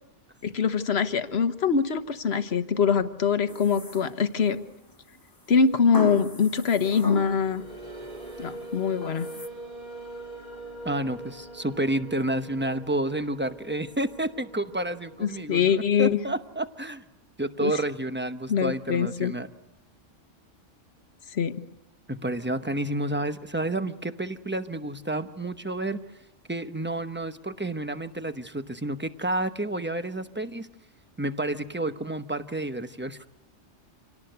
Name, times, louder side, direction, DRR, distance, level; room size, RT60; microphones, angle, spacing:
voice 1, 0.4-4.6 5.5-7.6 8.4-9.3 15.2-16.2 17.6-17.7 18.5-19.3 21.3-21.5, left 6 dB, 60° left, 10 dB, 1.4 m, -24 dB
sound 1, 3.5-4.6 5.9-7.6 8.0-8.5 9.0-9.5, left 1 dB, 20° left, 1.0 m, -36 dB
sound 2, 7.1-15.4, right 2 dB, 35° right, 3.1 m, -42 dB
voice 2, 10.8-17.0 17.4-19.5 22.1-26.0 26.5-30.7 31.2-33.2, right 1 dB, 10° right, 9 dB, 0.8 m, -30 dB
26.5 x 18.0 x 8.0 m, 0.90 s
omnidirectional pair, 1.3 m